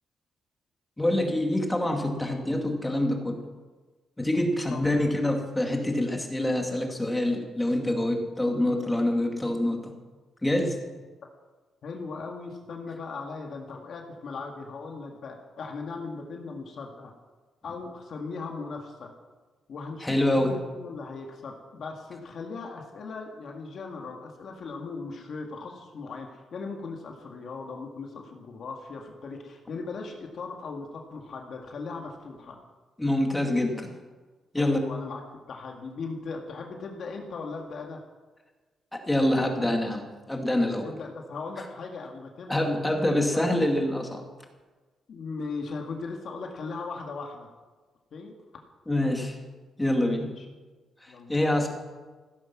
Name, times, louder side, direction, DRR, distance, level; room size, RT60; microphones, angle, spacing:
voice 1, 1.0-3.4 4.2-9.9 10.4-10.8 20.0-20.5 33.0-33.9 34.5-34.8 38.9-40.9 42.5-44.2 48.9-49.4 49.8-50.3 51.0-51.7, left 1 dB, 10° left, 2 dB, 2.2 m, -26 dB
voice 2, 11.8-17.1 17.6-19.1 19.7-32.6 34.6-38.0 40.8-42.7 43.3-43.4 45.1-47.5 48.1-48.3 50.1-50.4 51.1-51.3, left 4 dB, 50° left, 1 dB, 2.0 m, -38 dB
16.0 x 13.5 x 6.0 m, 1.3 s
cardioid pair, 150°, 0 cm